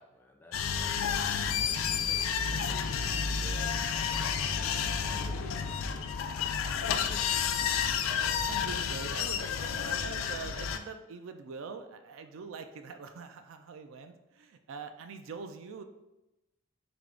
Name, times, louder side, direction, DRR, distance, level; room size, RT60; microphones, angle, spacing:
voice 1, 0.0-7.4, left 1 dB, 10° left, 2 dB, 0.3 m, -54 dB
sound 1, 0.5-10.8, left 7 dB, 85° left, 0.3 m, -31 dB
voice 2, 8.1-15.8, right 5 dB, 80° right, 8 dB, 0.4 m, -44 dB
3.5 x 3.3 x 3.7 m, 0.97 s
head